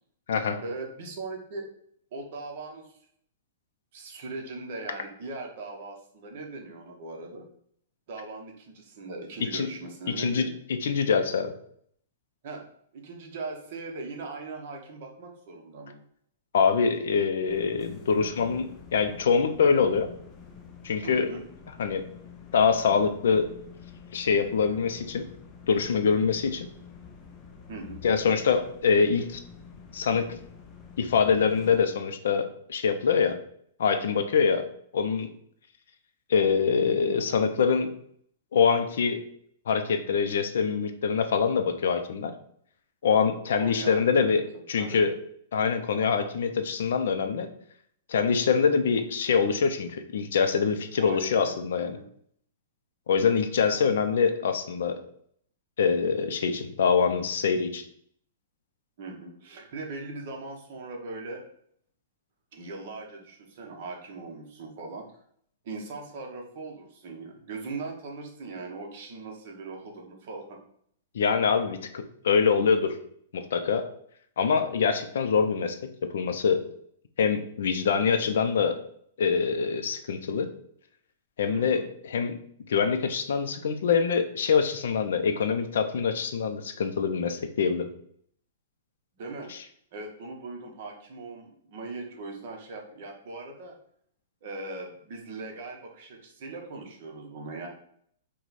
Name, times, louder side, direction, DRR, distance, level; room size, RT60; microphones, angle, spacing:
voice 1, 0.6-1.7 2.1-3.0 3.9-7.5 8.1-10.6 12.4-12.6 12.9-15.9 21.0-21.4 27.7-28.0 43.5-44.3 44.8-45.0 51.0-52.0 59.0-61.4 62.5-65.0 65.6-70.6 75.0-75.1 81.5-81.8 89.2-89.5 89.9-93.8 94.4-97.7, right 3 dB, 45° right, 1 dB, 1.0 m, -39 dB
voice 2, 10.2-10.5 10.8-11.5 16.5-20.1 20.8-21.3 21.8-22.0 22.5-23.5 24.1-25.3 25.7-26.7 28.0-29.4 29.9-30.4 31.0-33.4 33.8-34.7 34.9-35.3 36.3-37.9 38.5-39.2 39.7-42.3 43.0-44.4 44.7-45.1 45.5-47.5 48.1-52.0 53.1-55.0 55.8-57.8 71.1-73.0 73.3-73.9 74.4-75.8 76.1-76.6 77.2-78.8 79.2-80.5 81.4-82.4 82.7-87.9 89.5-89.6, left 6 dB, 70° left, 7 dB, 0.5 m, -24 dB
sound 1, 17.5-31.9, left 6 dB, 20° left, 0.5 m, -48 dB
4.7 x 2.3 x 4.1 m, 0.65 s
hypercardioid pair, 170°, 0 cm